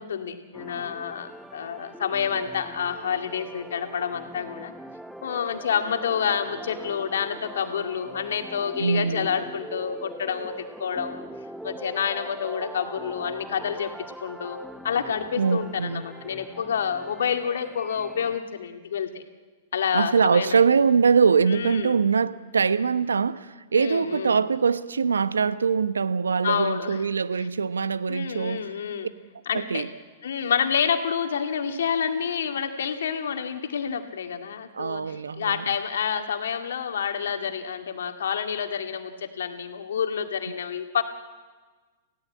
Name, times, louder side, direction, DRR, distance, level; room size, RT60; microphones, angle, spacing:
voice 1, 0.0-4.7 5.2-11.2 11.6-13.9 14.2-14.6 14.8-19.2 19.7-20.6 21.5-22.0 23.8-24.4 26.4-27.0 28.1-29.1 29.5-29.8 30.2-41.0, left 7 dB, 70° left, 2.2 m, -28 dB
sound 1, 0.5-18.4, right 1 dB, ahead, 0.9 m, -42 dB
voice 2, 8.8-9.3 15.4-16.0 19.9-28.7 29.5-29.9 34.7-35.6, right 5 dB, 80° right, 0.9 m, -23 dB
28.5 x 16.5 x 8.7 m
figure-of-eight pair, 100°, 0 cm